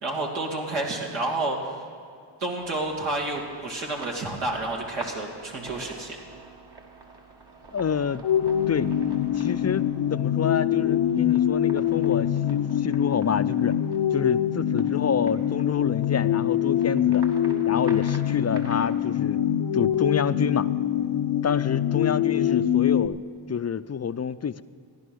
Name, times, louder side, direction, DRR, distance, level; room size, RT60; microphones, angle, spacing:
voice 1, 0.0-1.8 2.4-6.2, right 2 dB, 80° right, -1 dB, 2.5 m, -30 dB
sound 1, 2.6-18.9, right 3 dB, 55° right, 2.1 m, -47 dB
voice 2, 7.7-8.3 8.7-8.9 9.4-13.8 14.1-17.2 17.7-19.4 19.7-20.7 21.4-23.2 23.5-24.6, left 7 dB, 35° left, 14 dB, 0.5 m, -28 dB
sound 2, 8.2-23.1, left 10 dB, 80° left, 0.8 m, -24 dB
14.5 x 10.5 x 6.3 m, 2.3 s
cardioid pair, 45°, 48 cm